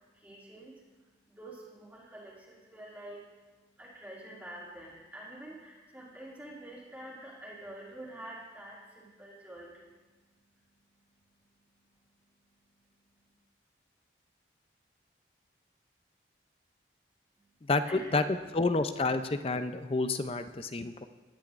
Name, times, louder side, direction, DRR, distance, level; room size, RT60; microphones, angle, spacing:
voice 1, 0.1-13.3 17.3-18.1, right 1 dB, 10° right, -7 dB, 2.7 m, -49 dB
voice 2, 17.6-18.2 18.5-21.1, left 3 dB, 30° left, 10 dB, 0.5 m, -29 dB
19.5 x 11.0 x 2.5 m, 1.2 s
head